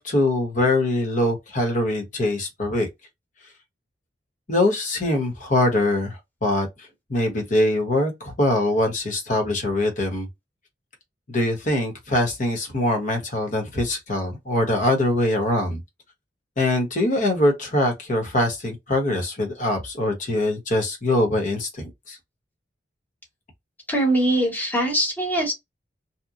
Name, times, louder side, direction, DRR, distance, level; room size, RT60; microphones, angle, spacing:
voice 1, 0.0-2.9 4.5-6.7 7.1-10.3 11.3-15.8 16.6-22.2, left 1 dB, 45° left, 1.0 m, -23 dB
voice 2, 23.9-25.5, right 1 dB, 10° left, 1.1 m, -22 dB
2.9 x 2.2 x 2.4 m
head